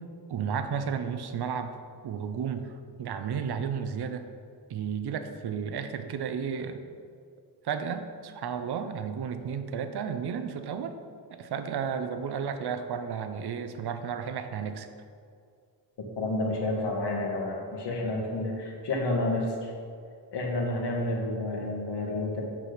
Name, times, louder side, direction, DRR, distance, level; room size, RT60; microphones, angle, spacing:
voice 1, 0.3-1.7 2.0-2.7 3.0-4.3 4.7-6.8 7.6-11.0 11.3-14.9, right 7 dB, 60° right, 9 dB, 0.7 m, -33 dB
voice 2, 16.2-19.7 20.3-22.4, left 2 dB, 65° left, 0 dB, 1.6 m, -30 dB
7.6 x 6.1 x 5.0 m, 2.3 s
wide cardioid pair, 160°, 43 cm